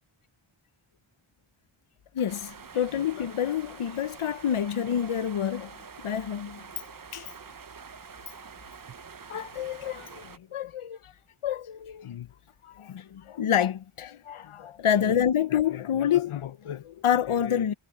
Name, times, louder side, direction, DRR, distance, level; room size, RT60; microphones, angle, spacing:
voice 1, 2.1-5.7 6.0-6.6 7.1-7.3 9.3-11.0 11.4-12.3 12.6-17.7, left 9 dB, 90° left, 0.7 m, -28 dB
sound 1, 2.3-10.4, right 6 dB, 40° right, 0.8 m, -46 dB
wide cardioid pair, 50°, 49 cm